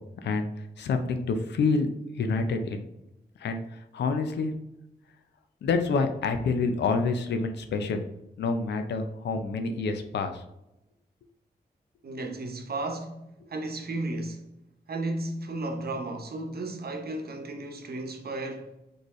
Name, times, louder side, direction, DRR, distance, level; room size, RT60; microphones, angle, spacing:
voice 1, 0.8-1.9 2.2-2.9 3.4-3.6 3.9-4.5 5.6-8.0 8.4-10.4, left 4 dB, 90° left, 0.5 m, -27 dB
voice 2, 12.0-13.2 13.5-14.5 14.9-18.7, right 2 dB, 65° right, 0.9 m, -34 dB
4.3 x 3.2 x 3.0 m
cardioid pair, 55°, 17 cm